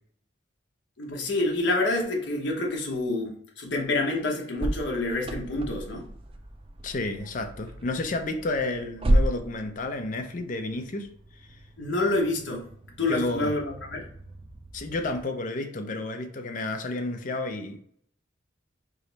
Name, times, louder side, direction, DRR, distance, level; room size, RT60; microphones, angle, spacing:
voice 1, 1.0-6.0 11.8-12.6 13.0-14.1, left 2 dB, 70° left, 0 dB, 0.9 m, -27 dB
sound 1, 4.6-15.2, right 1 dB, 30° right, 0.4 m, -33 dB
voice 2, 6.8-11.1 11.5-11.6 13.0-13.5 14.7-17.8, left 2 dB, 45° left, 6 dB, 0.5 m, -31 dB
4.9 x 2.1 x 3.9 m, 0.63 s
head